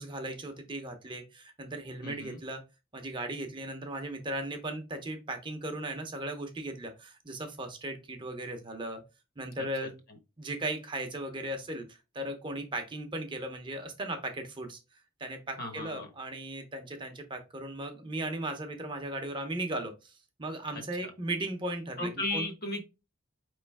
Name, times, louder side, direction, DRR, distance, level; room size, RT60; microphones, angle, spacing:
voice 1, 0.0-2.6 2.9-9.0 9.4-10.0 10.4-22.5, right 1 dB, 25° right, 5 dB, 0.7 m, -37 dB
voice 2, 2.0-2.4 9.6-9.7 15.6-16.1 21.0-21.1 22.0-22.8, left 2 dB, 50° left, 6 dB, 1.0 m, -35 dB
4.8 x 3.1 x 3.4 m, 0.28 s
head